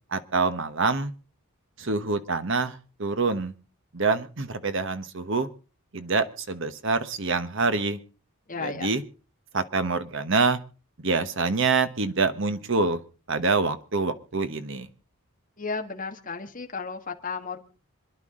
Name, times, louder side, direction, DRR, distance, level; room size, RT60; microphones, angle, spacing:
voice 1, 0.1-1.1 1.8-3.5 3.9-5.5 5.9-8.0 8.6-9.0 9.5-10.6 11.0-13.0 13.3-14.9, right 4 dB, 55° right, 10 dB, 1.2 m, -26 dB
voice 2, 8.5-8.9 15.6-17.6, left 4 dB, 35° left, 4 dB, 1.6 m, -33 dB
26.5 x 10.5 x 3.8 m, 0.35 s
head